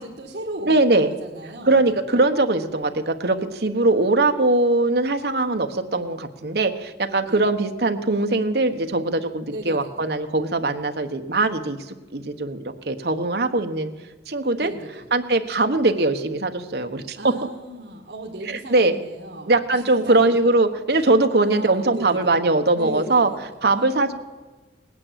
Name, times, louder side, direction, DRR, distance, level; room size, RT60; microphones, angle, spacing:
voice 1, 0.0-2.0 7.3-7.4 9.5-10.1 14.6-15.1 17.2-20.4 21.0-22.4 22.7-24.1, right 1 dB, 80° right, -2 dB, 1.7 m, -36 dB
voice 2, 0.7-1.1 1.7-11.8 12.1-13.9 14.3-14.7 15.1-17.3 18.4-18.9 19.5-23.3 23.6-24.1, right 2 dB, 65° right, 7 dB, 1.2 m, -21 dB
19.0 x 9.7 x 7.5 m, 1.2 s
head